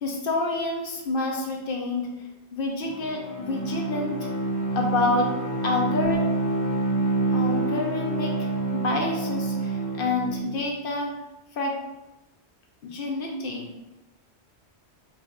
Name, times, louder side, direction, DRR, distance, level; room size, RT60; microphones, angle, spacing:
voice 1, 0.0-2.1 2.5-4.3 4.7-5.3 5.6-6.2 7.3-8.3 8.7-11.1 11.6-11.8 12.8-13.7, left 2 dB, 60° left, 1 dB, 0.7 m, -28 dB
Bowed string instrument, 2.8-10.6, right 2 dB, 25° right, 0.4 m, -27 dB
4.8 x 2.4 x 2.4 m, 0.98 s
omnidirectional pair, 1.1 m